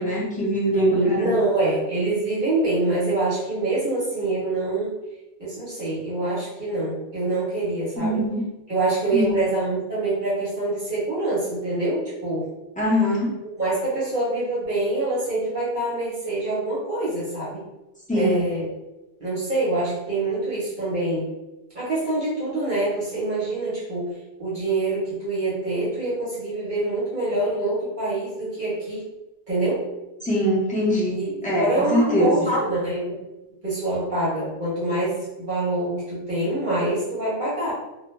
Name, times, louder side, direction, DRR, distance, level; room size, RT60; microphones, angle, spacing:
voice 1, 0.0-1.3 8.0-8.4 9.1-9.4 12.8-13.3 18.1-18.4 30.2-32.6, equal, 10° left, -7 dB, 0.4 m, -23 dB
voice 2, 0.7-5.0 5.4-8.2 8.7-12.5 13.6-17.6 18.1-18.7 19.2-21.3 21.7-29.0 29.5-29.9 31.1-33.2 33.6-37.7, right 2 dB, 45° right, -8 dB, 0.8 m, -25 dB
2.2 x 2.1 x 3.0 m, 1.0 s
omnidirectional pair, 1.2 m